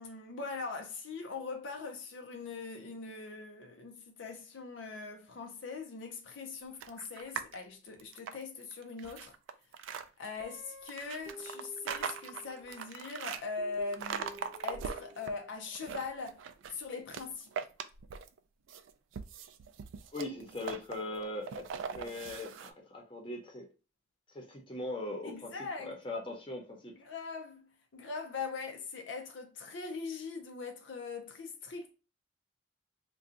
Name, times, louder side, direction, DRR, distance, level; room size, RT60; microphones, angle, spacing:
voice 1, 0.0-9.3 10.2-16.4 16.7-17.5 25.2-26.0 27.0-31.9, left 4 dB, 75° left, 0.5 m, -41 dB
sound 1, 6.8-7.6 8.0-10.0 10.9-13.4 13.9-15.3 15.7-16.8 17.1-18.4 18.7-22.7, right 6 dB, 85° right, 0.3 m, -41 dB
Guitar, 10.4-12.9 13.6-15.5, equal, 20° right, 0.7 m, -51 dB
voice 2, 20.1-21.7 21.9-23.7 24.3-26.9, left 2 dB, 25° left, 0.8 m, -40 dB
2.6 x 2.3 x 3.7 m
head